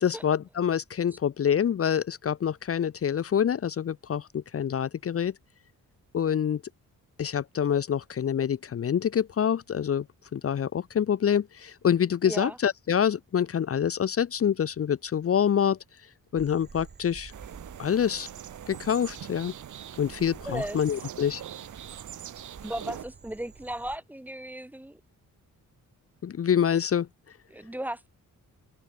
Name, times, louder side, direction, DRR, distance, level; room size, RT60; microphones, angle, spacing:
voice 1, 0.0-5.3 6.1-6.6 7.2-10.0 10.3-15.8 16.3-17.3 17.8-18.3 18.7-19.5 20.0-21.4 26.2-27.1, left 8 dB, 45° left, 1.1 m, -26 dB
voice 2, 12.3-12.6 20.5-20.8 22.6-25.0 27.5-28.1, right 1 dB, 5° right, 2.4 m, -36 dB
Frog, 16.3-24.0, right 5 dB, 30° right, 3.7 m, -50 dB
sound 1, 17.3-23.0, right 10 dB, 60° right, 1.6 m, -43 dB
wide cardioid pair, 180°, 33 cm